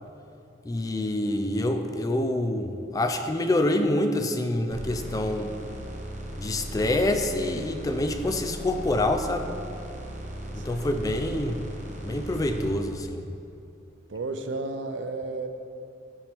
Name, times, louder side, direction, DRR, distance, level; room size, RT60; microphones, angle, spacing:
voice 1, 0.6-5.6 6.4-9.5 10.5-11.6 12.0-13.2, left 1 dB, 20° left, 6 dB, 0.3 m, -26 dB
sound 1, 4.7-12.7, right 1 dB, 40° right, 0.9 m, -37 dB
voice 2, 10.6-11.1 14.1-15.5, right 3 dB, 70° right, 7 dB, 0.5 m, -33 dB
10.0 x 4.5 x 3.4 m, 2.7 s
head